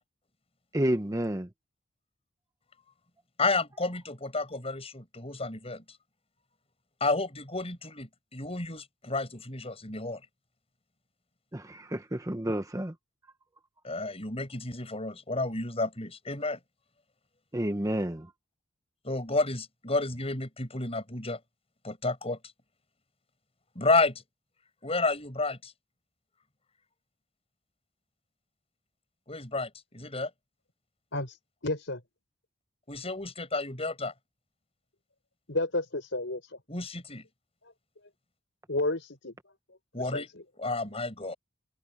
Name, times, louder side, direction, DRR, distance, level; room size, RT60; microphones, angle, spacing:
voice 1, 0.7-1.5 11.5-12.9 17.5-18.3, right 1 dB, 15° right, 0.9 m, -30 dB
voice 2, 3.4-5.8 7.0-10.2 13.8-16.6 19.0-21.4 21.8-22.4 23.7-24.2 24.8-25.7 29.3-30.3 32.9-34.1 36.7-37.2 39.9-40.3 40.6-41.3, left 3 dB, 30° left, 7.8 m, -31 dB
voice 3, 31.6-32.0 35.5-36.4 38.7-39.3 40.1-40.4, left 2 dB, 65° left, 6.1 m, -31 dB
head